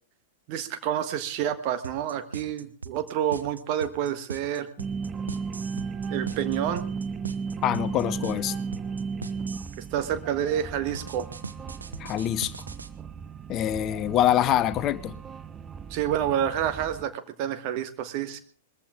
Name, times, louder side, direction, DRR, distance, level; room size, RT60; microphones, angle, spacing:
voice 1, 0.5-4.7 6.1-6.9 9.9-11.3 15.9-18.4, right 10 dB, 40° right, 10 dB, 1.4 m, -28 dB
sound 1, 1.8-9.8 10.9-12.9, right 4 dB, 75° right, 1.0 m, -40 dB
sound 2, 4.8-17.0, right 5 dB, 20° right, 0.6 m, -35 dB
voice 2, 7.6-8.6 12.0-12.5 13.5-15.2, left 11 dB, 30° left, 15 dB, 0.7 m, -25 dB
21.0 x 15.0 x 3.7 m, 0.43 s
figure-of-eight pair, 100°, 0 cm